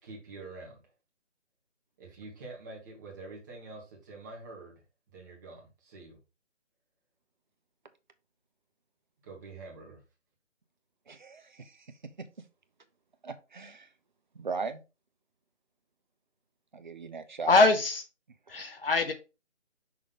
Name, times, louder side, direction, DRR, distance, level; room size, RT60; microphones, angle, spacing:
voice 1, 0.0-0.8 2.0-4.8 5.1-6.2 9.2-10.0, right 3 dB, 15° right, -2 dB, 1.4 m, -46 dB
voice 2, 11.1-12.3 13.2-13.9 14.3-14.8 16.7-17.7 18.5-18.7, right 4 dB, 40° right, 10 dB, 0.7 m, -39 dB
voice 3, 17.5-18.0 18.5-19.1, left 3 dB, 50° left, 7 dB, 0.9 m, -23 dB
6.0 x 3.2 x 5.2 m, 0.29 s
figure-of-eight pair, 160°, 36 cm